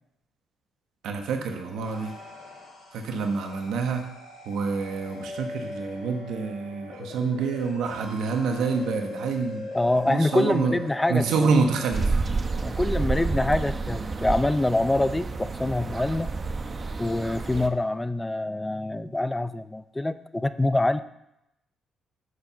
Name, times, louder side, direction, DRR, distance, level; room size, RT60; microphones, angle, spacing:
voice 1, 1.0-2.1 2.9-4.1 4.5-10.7 11.1-12.1, right 4 dB, 80° right, 4 dB, 1.2 m, -27 dB
sound 1, 1.5-11.9, left 2 dB, 70° left, 4.1 m, -40 dB
voice 2, 9.7-11.2 12.6-16.3 17.0-21.0, left 2 dB, 15° left, 13 dB, 0.5 m, -25 dB
sound 2, 11.9-17.7, right 3 dB, 35° right, 0.8 m, -29 dB
11.0 x 4.7 x 6.9 m, 0.85 s
cardioid pair, 90°, 0 cm